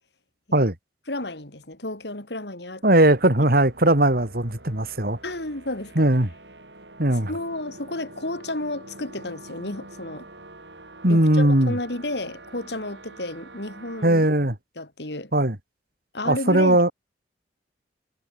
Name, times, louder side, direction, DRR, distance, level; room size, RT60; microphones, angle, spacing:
voice 1, 1.1-2.8 5.2-6.1 7.3-10.3 11.1-14.3 14.8-15.3 16.1-16.8, left 1 dB, 65° left, 3.8 m, -32 dB
voice 2, 2.8-5.2 5.9-6.3 7.0-7.3 11.0-11.7 14.0-14.5 15.3-15.6 16.2-16.9, right 1 dB, 55° right, 3.4 m, -19 dB
sound 1, 3.1-14.1, right 2 dB, 70° right, 7.6 m, -46 dB
head